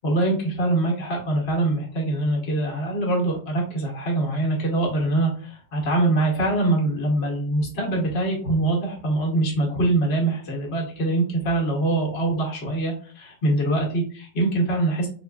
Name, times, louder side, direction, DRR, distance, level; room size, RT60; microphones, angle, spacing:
voice 1, 0.0-15.1, right 2 dB, 65° left, -2 dB, 1.2 m, -23 dB
3.9 x 2.3 x 2.3 m, 0.43 s
omnidirectional pair, 1.2 m